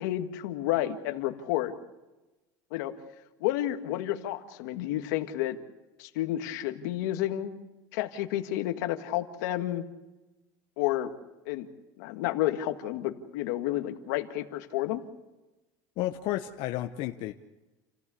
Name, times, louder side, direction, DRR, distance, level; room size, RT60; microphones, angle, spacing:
voice 1, 0.0-1.7 2.7-2.9 3.4-5.6 6.0-7.6 7.9-9.8 10.8-11.1 11.5-11.7 12.0-15.0, left 14 dB, 85° left, 6 dB, 1.8 m, -30 dB
voice 2, 16.0-17.3, left 14 dB, 60° left, 6 dB, 0.9 m, -32 dB
28.5 x 15.5 x 8.4 m, 1.1 s
cardioid pair, 145°, 9 cm